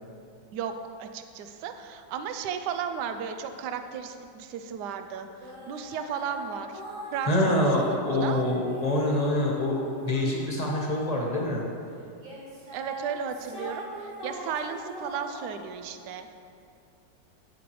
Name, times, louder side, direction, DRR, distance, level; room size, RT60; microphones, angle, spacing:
voice 1, 0.5-5.3 5.7-6.8 7.1-7.5 7.9-8.4 12.7-16.3, right 7 dB, 70° right, 8 dB, 1.1 m, -34 dB
sound 1, 5.4-11.6 12.2-15.9, right 1 dB, 55° right, 2.6 m, -43 dB
voice 2, 7.2-11.6, left 1 dB, 25° left, -3 dB, 1.3 m, -25 dB
11.0 x 8.5 x 3.1 m, 2.5 s
omnidirectional pair, 2.0 m